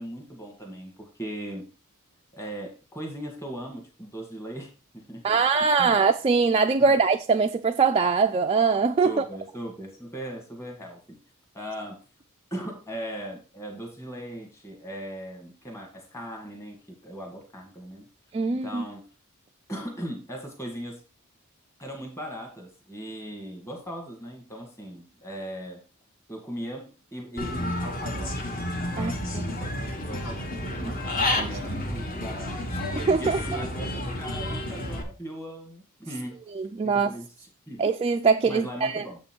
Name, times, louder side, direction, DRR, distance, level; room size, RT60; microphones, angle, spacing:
voice 1, 0.0-1.7 2.3-5.4 5.8-6.0 9.0-11.2 11.5-12.0 12.5-18.1 18.5-19.1 19.7-21.0 21.8-25.8 26.3-28.5 28.9-29.7 30.0-31.0 31.5-32.9 33.2-36.4 36.8-37.3 37.7-37.8 38.5-39.2, equal, 10° left, 1.6 m, -38 dB
voice 2, 5.2-9.2 18.3-18.8 29.0-29.4 31.4-31.6 33.0-33.4 36.6-37.1 37.8-39.0, right 5 dB, 25° right, 0.3 m, -22 dB
Human voice / Bird, 27.4-35.0, left 1 dB, 40° left, 1.3 m, -30 dB
7.2 x 5.2 x 4.4 m
head